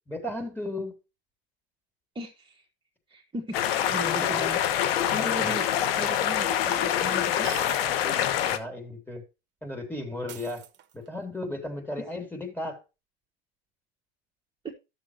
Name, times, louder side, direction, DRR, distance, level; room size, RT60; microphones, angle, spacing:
voice 1, 0.1-1.0 4.2-4.4 4.9-5.5 7.8-9.2 9.6-10.6 10.9-12.8, left 1 dB, 5° left, 3.0 m, -36 dB
voice 2, 2.1-2.6 3.1-4.6 5.1-5.7 6.0-7.5 14.6-14.7, right 2 dB, 15° right, 1.5 m, -37 dB
sound 1, 3.5-8.6, left 10 dB, 75° left, 1.2 m, -25 dB
sound 2, 6.0-6.1 7.4-8.2 8.5-8.6 10.3-11.2, right 10 dB, 40° right, 1.2 m, -44 dB
12.0 x 7.0 x 3.0 m
hypercardioid pair, 100°, 29 cm